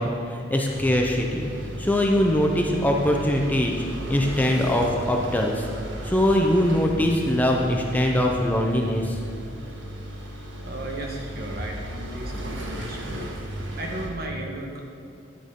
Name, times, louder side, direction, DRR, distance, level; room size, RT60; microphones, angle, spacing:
voice 1, 0.0-1.5 1.8-3.7 4.1-5.7 6.0-9.2, left 1 dB, 10° left, 0 dB, 0.6 m, -22 dB
sound 1, 0.6-14.1, equal, 70° right, 1.5 m, -36 dB
voice 2, 10.6-14.8, right 1 dB, 55° right, 0 dB, 1.4 m, -35 dB
10.5 x 9.1 x 3.7 m, 2.6 s
head